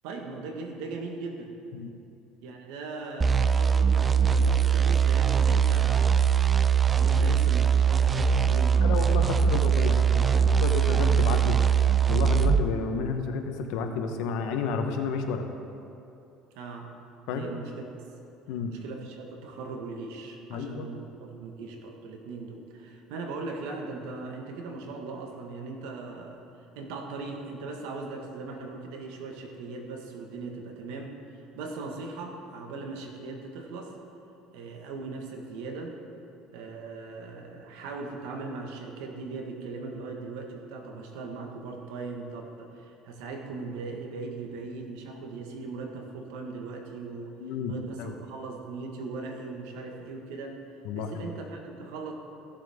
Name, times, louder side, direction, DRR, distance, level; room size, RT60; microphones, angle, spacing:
voice 1, 0.0-1.5 2.4-6.4 7.0-9.0 9.4-9.6 9.8-10.6 16.5-16.9 17.3-17.8 18.7-34.0 34.5-36.0 36.5-47.3 47.7-50.6 50.9-52.1, right 3 dB, 80° right, 2 dB, 1.5 m, -39 dB
sound 1, 3.2-12.7, right 7 dB, 25° right, 0.4 m, -22 dB
voice 2, 8.8-11.6 12.1-15.5 17.3-17.5 18.5-18.7 20.5-20.9 47.4-48.2 50.8-51.2, left 5 dB, 75° left, 5 dB, 1.0 m, -31 dB
15.5 x 7.3 x 3.6 m, 2.8 s
supercardioid pair, 110°, 0 cm